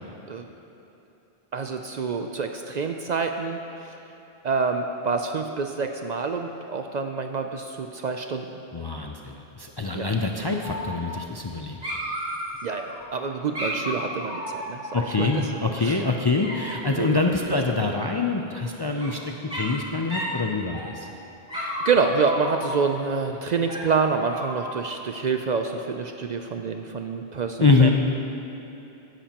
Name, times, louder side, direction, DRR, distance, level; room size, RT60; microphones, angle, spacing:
voice 1, 1.5-4.0 4.4-8.5 9.9-10.1 12.6-16.1 16.9-17.2 17.5-17.8 18.8-19.1 21.8-27.9, right 5 dB, 55° right, 5 dB, 0.5 m, -27 dB
voice 2, 8.7-11.8 14.9-19.2 19.5-21.1 27.6-27.9, left 3 dB, 35° left, 1 dB, 0.4 m, -24 dB
Dog, 10.6-11.5 11.8-13.0 13.5-15.6 16.4-17.1 18.5-19.1 19.5-19.8 20.1-20.4 20.7-21.1 21.5-23.0 23.7-24.9, equal, 5° right, 2.8 m, -33 dB
16.0 x 10.5 x 2.9 m, 3.0 s
omnidirectional pair, 1.0 m